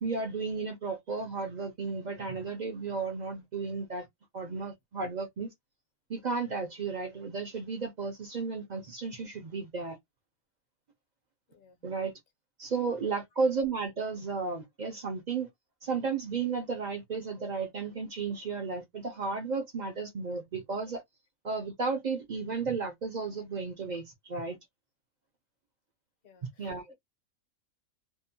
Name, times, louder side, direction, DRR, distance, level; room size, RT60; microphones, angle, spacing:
voice 1, 0.0-4.1 4.3-5.5 6.1-10.0 11.8-12.1 12.6-15.5 15.8-21.0 21.4-24.6 26.6-26.9, right 4 dB, 60° right, 0.4 m, -33 dB
voice 2, 11.5-11.9 13.0-13.2 26.2-26.9, left 5 dB, 50° left, 0.8 m, -60 dB
2.7 x 2.1 x 2.6 m
omnidirectional pair, 1.5 m